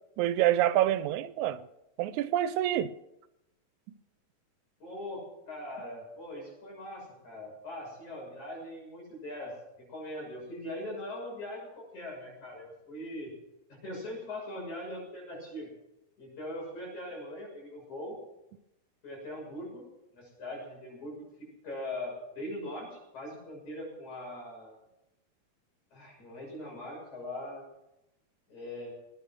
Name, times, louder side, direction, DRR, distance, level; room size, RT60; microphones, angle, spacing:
voice 1, 0.2-1.6 2.0-2.9, right 13 dB, 85° right, 2.1 m, -27 dB
voice 2, 4.8-13.3 13.7-15.7 16.2-18.2 19.0-19.8 20.1-21.2 21.6-24.7 25.9-27.6 28.5-28.9, left 1 dB, 75° left, 8.2 m, -41 dB
18.0 x 10.5 x 6.2 m
omnidirectional pair, 3.4 m